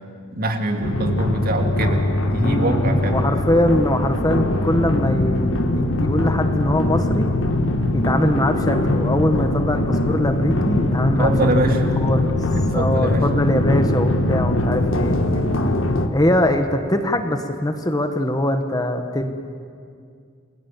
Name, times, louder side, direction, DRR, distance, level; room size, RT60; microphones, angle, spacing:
voice 1, 0.3-3.2 7.8-8.1 11.0-11.8 12.6-13.3 14.7-14.9 15.3-15.6, right 1 dB, 45° right, 4 dB, 2.1 m, -24 dB
sound 1, 0.8-16.1, left 1 dB, 70° left, 1.5 m, -21 dB
voice 2, 2.4-7.3 7.9-11.3 11.7-12.4 12.7-15.2 16.1-19.3, left 1 dB, 20° left, 7 dB, 1.2 m, -22 dB
29.0 x 20.5 x 7.4 m, 2.3 s
head